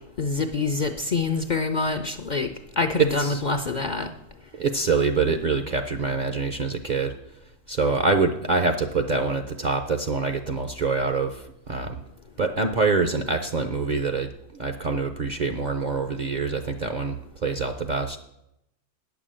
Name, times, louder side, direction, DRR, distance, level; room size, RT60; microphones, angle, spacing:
voice 1, 0.2-2.5 2.8-4.1, left 3 dB, 50° left, 7 dB, 0.5 m, -25 dB
voice 2, 3.0-3.4 4.6-7.2 7.7-12.0 12.4-18.2, right 4 dB, 50° right, 6 dB, 0.5 m, -25 dB
9.3 x 7.1 x 7.5 m, 0.83 s
omnidirectional pair, 1.3 m